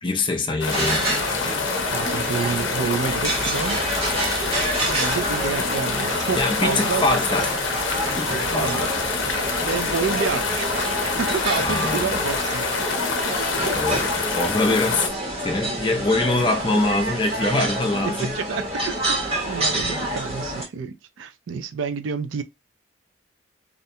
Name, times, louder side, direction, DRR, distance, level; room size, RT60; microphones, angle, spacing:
voice 1, 0.0-1.0 6.3-7.5 8.2-8.9 11.6-12.2 13.5-15.1 15.4-18.3, left 2 dB, 25° left, 0.5 m, -24 dB
sound 1, 0.6-15.1, left 5 dB, 80° left, 0.5 m, -27 dB
sound 2, 0.7-20.7, right 1 dB, 30° right, 0.9 m, -27 dB
voice 2, 1.9-3.8 4.6-7.0 7.4-7.5 8.5-8.9 9.6-12.8 13.2-13.8 18.0-22.4, right 6 dB, 75° right, 0.4 m, -29 dB
sound 3, 3.0-12.6, equal, 50° right, 1.1 m, -42 dB
2.5 x 2.1 x 2.7 m
head